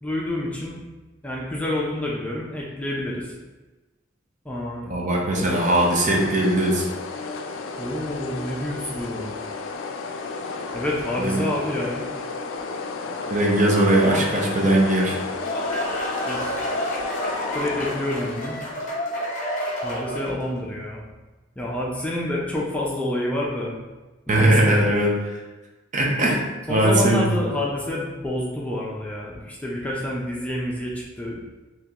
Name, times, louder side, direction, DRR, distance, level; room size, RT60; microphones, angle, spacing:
voice 1, 0.0-0.8 1.2-3.3 4.4-5.0 5.3-5.5 7.8-9.3 10.7-12.1 14.0-14.2 16.3-16.7 17.5-18.6 19.8-21.0 21.6-23.8 24.3-24.8 26.7-31.4, left 1 dB, 5° left, -4 dB, 0.4 m, -28 dB
voice 2, 4.8-6.8 11.2-11.4 13.3-15.2 24.3-25.3 25.9-26.4 26.7-27.4, right 1 dB, 40° right, -2 dB, 0.7 m, -20 dB
sound 1, 5.5-18.9, left 4 dB, 70° left, 0.3 m, -33 dB
sound 2, 15.1-20.5, equal, 40° left, 0.7 m, -29 dB
3.6 x 2.9 x 2.8 m, 1.2 s
head